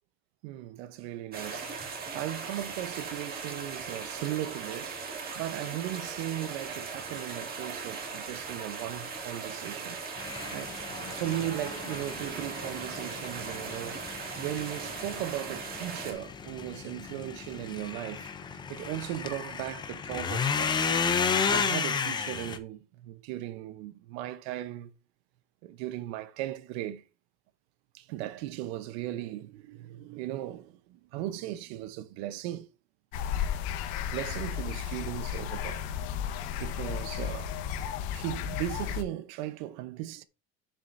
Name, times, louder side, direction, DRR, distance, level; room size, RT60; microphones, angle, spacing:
voice 1, 0.4-10.0 10.5-10.8 11.1-14.0 14.4-18.3 18.7-20.8 21.5-24.9 25.6-27.0 27.9-32.7 34.0-35.8 36.6-37.6 38.1-40.2, right 14 dB, 80° right, 0.9 m, -37 dB
sound 1, 1.3-16.1, right 5 dB, 30° right, 1.9 m, -39 dB
sound 2, 10.2-22.6, left 6 dB, 15° left, 0.5 m, -33 dB
sound 3, 33.1-39.0, left 9 dB, 85° left, 1.2 m, -34 dB
9.0 x 7.3 x 2.6 m
cardioid pair, 170°, 32 cm